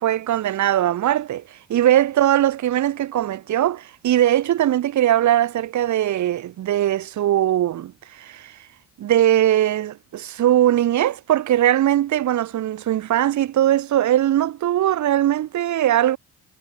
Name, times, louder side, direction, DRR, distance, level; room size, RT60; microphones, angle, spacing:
voice 1, 0.0-8.6 9.0-16.2, right 12 dB, 70° right, 1.7 m, -20 dB
cardioid pair, 90°, 30 cm